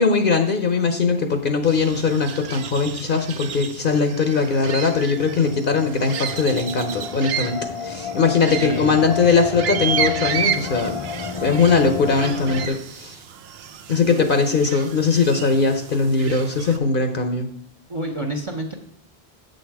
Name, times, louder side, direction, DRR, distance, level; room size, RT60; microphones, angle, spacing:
voice 1, 0.0-11.0 11.4-13.2 13.9-17.5, left 4 dB, 60° left, 6 dB, 1.0 m, -20 dB
sound 1, 1.6-16.8, right 8 dB, 75° right, 0.9 m, -32 dB
sound 2, 5.1-12.7, left 6 dB, 40° left, 0.4 m, -31 dB
voice 2, 8.4-9.2 17.9-18.7, right 1 dB, 30° right, 4 dB, 0.9 m, -29 dB
8.1 x 6.5 x 4.6 m, 0.67 s
omnidirectional pair, 1.1 m